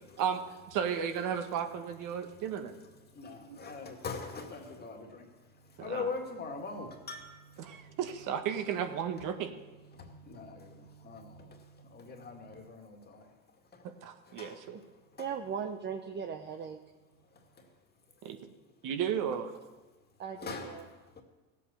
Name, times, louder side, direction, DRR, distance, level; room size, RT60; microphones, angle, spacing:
voice 1, 0.7-2.7 3.5-3.6 5.8-6.1 7.6-9.5 13.8-14.8 18.2-18.4 18.8-19.6, right 8 dB, 50° right, 1.5 m, -34 dB
voice 2, 2.1-8.0 9.0-9.2 9.6-13.3 13.6-13.9 14.2-15.4 17.2-17.7 20.4-21.2, left 4 dB, 25° left, 2.1 m, -44 dB
voice 3, 15.2-16.8 20.2-20.8, right 7 dB, 25° right, 0.8 m, -38 dB
16.5 x 8.4 x 6.9 m
supercardioid pair, 115°, 41 cm